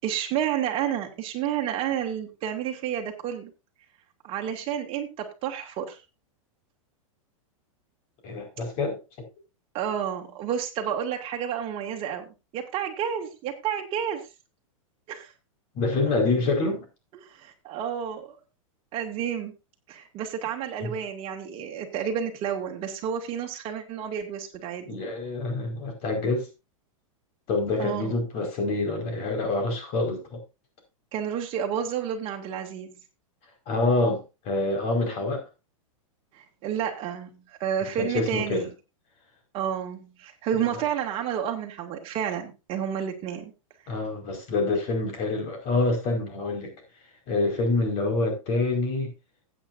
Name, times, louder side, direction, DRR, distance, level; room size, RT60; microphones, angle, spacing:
voice 1, 0.0-3.5 4.2-6.0 9.7-14.2 15.1-15.3 17.2-18.3 18.9-19.5 19.9-25.0 27.8-28.2 31.1-33.0 36.3-38.7 39.5-43.5, right 9 dB, 30° right, 2.4 m, -30 dB
voice 2, 8.2-9.0 15.7-16.9 20.8-20.9 24.8-26.5 27.5-30.4 33.7-35.4 38.0-38.6 43.9-46.7 47.3-49.1, left 2 dB, 35° left, 4.9 m, -26 dB
16.0 x 8.8 x 2.6 m
supercardioid pair, 150°, 18 cm